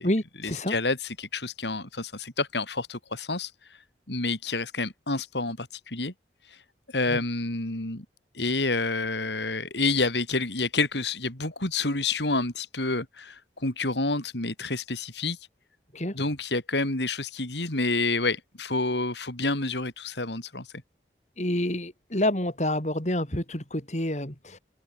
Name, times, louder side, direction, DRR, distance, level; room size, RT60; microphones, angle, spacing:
voice 1, 0.0-0.7 7.1-7.2 15.9-16.2 21.4-24.6, left 1 dB, 40° left, 3.9 m, -28 dB
voice 2, 0.7-3.5 4.1-6.1 6.9-8.1 8.3-15.4 16.1-20.7, left 3 dB, 80° left, 4.2 m, -28 dB
open air
head